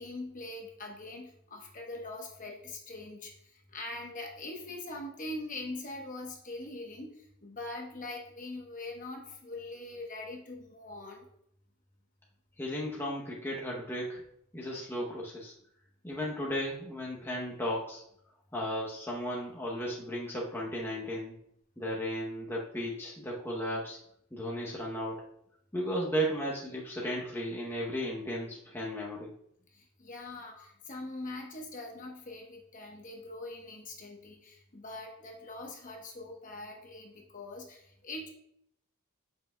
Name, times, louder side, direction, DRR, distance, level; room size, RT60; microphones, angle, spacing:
voice 1, 0.0-11.3 29.7-38.3, left 2 dB, 35° left, 1 dB, 1.0 m, -42 dB
voice 2, 12.6-14.2 14.5-15.5 16.0-18.0 18.5-21.3 21.8-24.0 24.3-25.3 25.7-29.3 30.5-30.7, equal, 10° left, -4 dB, 0.8 m, -35 dB
7.5 x 5.6 x 2.2 m, 0.73 s
head